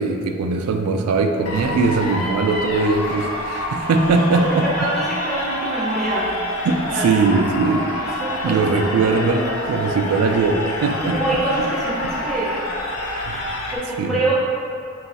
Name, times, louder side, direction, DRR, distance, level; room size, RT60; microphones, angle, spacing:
voice 1, 0.0-4.9 6.6-11.4 13.2-13.5 14.0-14.2, right 4 dB, 85° right, 4 dB, 0.3 m, -20 dB
sound 1, 1.5-13.8, left 1 dB, 75° left, 0.5 m, -27 dB
voice 2, 5.2-6.3 6.9-7.2 8.2-8.5 11.1-12.5 13.9-14.3, right 2 dB, ahead, -9 dB, 0.8 m, -24 dB
4.2 x 2.3 x 4.0 m, 2.6 s
head